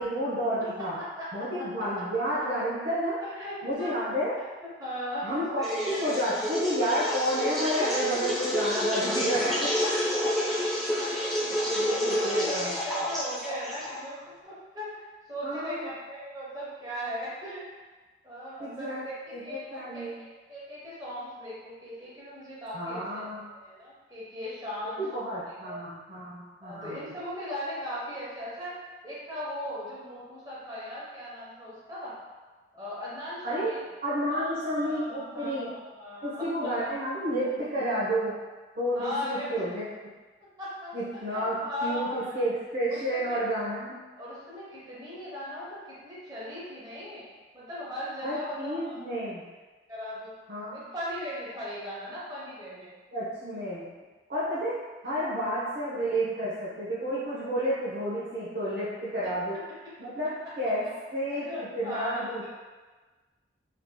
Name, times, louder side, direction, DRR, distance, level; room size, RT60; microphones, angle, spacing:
voice 1, 0.0-1.0 1.3-3.2 3.6-4.3 5.2-9.7 11.5-12.8 15.4-15.9 18.6-19.0 19.3-19.4 19.7-20.2 22.7-23.4 25.0-27.0 33.4-33.7 34.0-35.7 36.2-38.4 38.8-39.8 40.9-44.0 48.2-49.4 50.5-50.8 53.1-53.9 54.3-54.8 55.0-59.6 60.0-60.8 61.1-62.5, equal, 55° right, -11 dB, 0.8 m, -30 dB
voice 2, 1.0-1.3 1.6-1.7 2.3-2.5 3.2-3.9 4.8-6.2 7.9-8.0 9.5-9.6 9.8-10.1 11.9-14.2 14.4-17.6 18.2-25.3 25.6-25.8 26.6-28.8 29.0-32.1 32.7-33.8 34.3-36.9 38.9-39.7 40.6-42.3 42.9-43.4 44.2-47.2 47.5-49.0 49.9-50.3 50.7-52.9 59.2-59.3 60.4-60.5 61.3-62.5, equal, 20° right, -8 dB, 0.9 m, -38 dB
sound 1, 5.6-14.2, equal, ahead, 0.5 m, -29 dB
3.3 x 2.9 x 2.2 m, 1.3 s
head